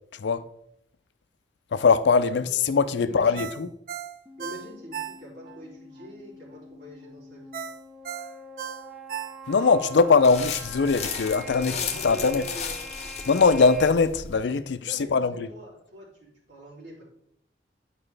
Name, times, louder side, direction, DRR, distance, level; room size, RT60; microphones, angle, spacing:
voice 1, 1.7-3.7 9.5-11.7 12.0-12.4 13.3-15.5, left 4 dB, 80° left, 0.4 m, -21 dB
voice 2, 2.9-3.5 4.4-7.5 11.5-12.8 14.8-17.0, equal, 75° right, 3.3 m, -43 dB
Ringtone, 3.3-5.6 6.0-6.1 7.5-9.8 10.2-10.3, right 9 dB, 50° right, 0.5 m, -36 dB
sound 1, 4.3-13.9, equal, 5° right, 0.6 m, -44 dB
sound 2, 10.2-14.4, left 6 dB, 35° left, 0.8 m, -35 dB
11.0 x 4.8 x 3.3 m
head